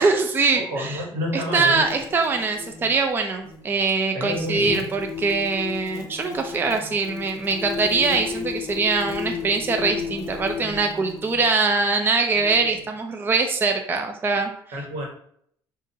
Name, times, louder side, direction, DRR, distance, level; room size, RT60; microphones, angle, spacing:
voice 1, 0.0-1.0 1.3-14.5, right 4 dB, 25° right, 4 dB, 0.4 m, -23 dB
voice 2, 0.5-1.8 4.1-4.7 14.7-15.1, left 1 dB, 85° right, 0 dB, 1.3 m, -29 dB
sound 1, 1.6-3.0 3.4-3.6 4.3-11.5 12.3-12.9, left 6 dB, 45° left, 0.5 m, -34 dB
5.1 x 2.5 x 2.7 m, 0.65 s
cardioid pair, 110°, 9 cm